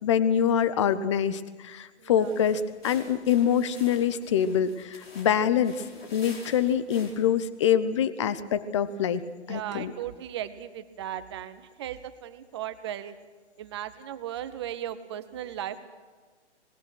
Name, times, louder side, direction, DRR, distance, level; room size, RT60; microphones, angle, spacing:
voice 1, 0.0-5.8 6.1-9.2 9.5-9.9, left 8 dB, 25° left, 15 dB, 0.8 m, -25 dB
voice 2, 2.0-2.4 9.5-13.1 13.6-15.9, right 11 dB, 25° right, 12 dB, 0.9 m, -37 dB
sound 1, 2.1-7.4, left 2 dB, 55° left, 4.8 m, -49 dB
26.0 x 20.0 x 6.3 m, 1.4 s
figure-of-eight pair, 135°, 35 cm